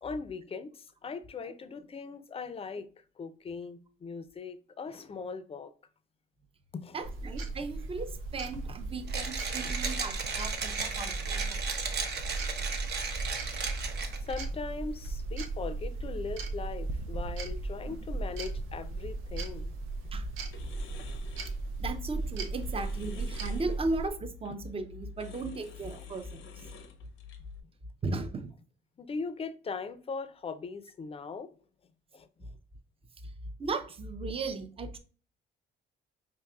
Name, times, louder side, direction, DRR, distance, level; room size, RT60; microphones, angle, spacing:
voice 1, 0.0-2.9 3.2-5.7 6.7-7.0 14.2-19.7 20.0-20.1 26.0-26.1 29.0-31.5 32.1-32.5, left 4 dB, 30° left, 0.5 m, -39 dB
voice 2, 6.9-11.6 20.1-20.3 21.8-26.5 28.0-28.5 33.6-35.0, right 3 dB, 30° right, 0.6 m, -36 dB
sound 1, 7.0-24.1, right 3 dB, 90° right, 0.6 m, -36 dB
Mechanisms, 9.1-14.3, right 5 dB, 60° right, 0.8 m, -35 dB
sound 2, 19.9-27.6, left 6 dB, 85° left, 0.6 m, -49 dB
4.6 x 2.8 x 2.3 m
cardioid pair, 90°, 20 cm